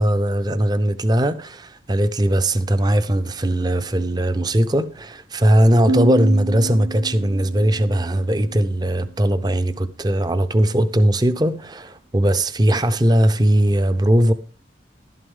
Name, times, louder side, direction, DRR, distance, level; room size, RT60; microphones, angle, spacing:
voice 1, 0.0-14.3, right 1 dB, 20° right, 0.6 m, -19 dB
sound 1, 5.9-9.3, right 3 dB, 90° right, 1.0 m, -28 dB
11.5 x 11.0 x 3.6 m
head